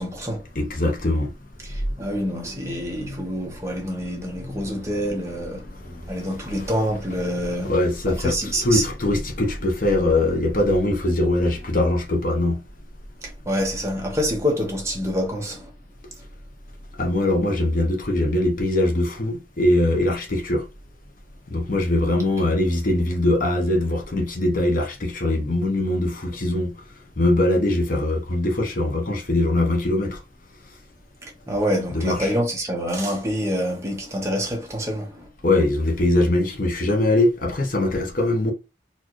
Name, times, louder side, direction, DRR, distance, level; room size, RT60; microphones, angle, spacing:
voice 1, 0.0-0.4 1.6-5.6 6.1-7.7 8.1-8.8 13.2-15.7 31.2-35.3, equal, 15° right, 1.0 m, -26 dB
voice 2, 0.5-1.3 2.0-2.1 2.6-3.4 4.3-4.7 5.6-6.5 7.6-8.4 8.6-12.6 17.0-20.6 21.5-26.8 27.2-30.2 31.9-32.3 35.4-38.5, left 1 dB, 50° left, 0.8 m, -22 dB
4.3 x 2.4 x 3.0 m
head